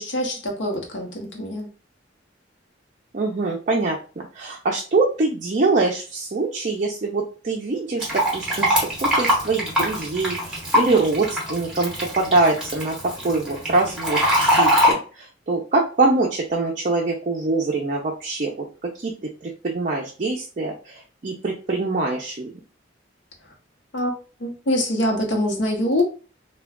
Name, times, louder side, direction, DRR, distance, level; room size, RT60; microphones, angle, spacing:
voice 1, 0.0-1.7 23.9-24.1 24.4-26.0, left 1 dB, 65° left, 2 dB, 0.8 m, -24 dB
voice 2, 3.1-4.0 4.3-8.7 9.0-18.7 19.0-19.1 19.4-22.5, right 3 dB, 40° right, -1 dB, 0.5 m, -24 dB
Fill (with liquid), 8.0-14.9, equal, 5° right, 1.2 m, -22 dB
2.3 x 2.2 x 3.5 m, 0.36 s
head